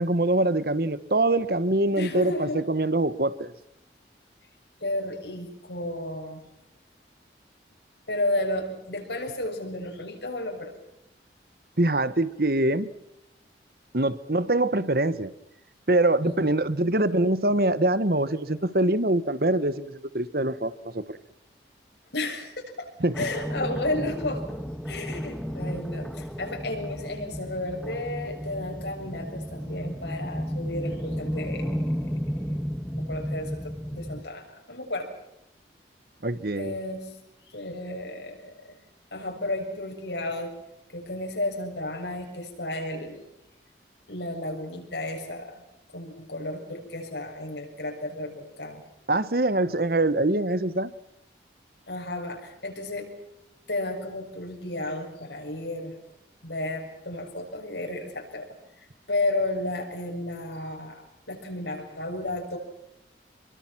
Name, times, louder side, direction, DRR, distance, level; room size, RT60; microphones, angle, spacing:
voice 1, 0.0-3.5 11.8-12.9 13.9-15.3 15.9-21.2 23.0-23.3 36.2-36.8 49.1-50.9, right 2 dB, 55° right, 15 dB, 1.3 m, -24 dB
voice 2, 1.9-2.6 4.8-6.4 8.1-10.7 16.2-16.5 22.1-22.9 23.2-24.5 24.9-32.5 32.9-35.2 36.6-37.2 37.4-38.8 39.1-40.5 40.9-43.2 44.1-45.6 45.9-48.8 51.9-53.1 53.7-56.0 56.4-58.5 58.8-61.0 61.3-62.6, left 1 dB, 75° left, 2 dB, 7.1 m, -33 dB
sound 1, 23.1-34.2, equal, ahead, 1.6 m, -33 dB
28.0 x 24.0 x 6.0 m, 0.85 s
head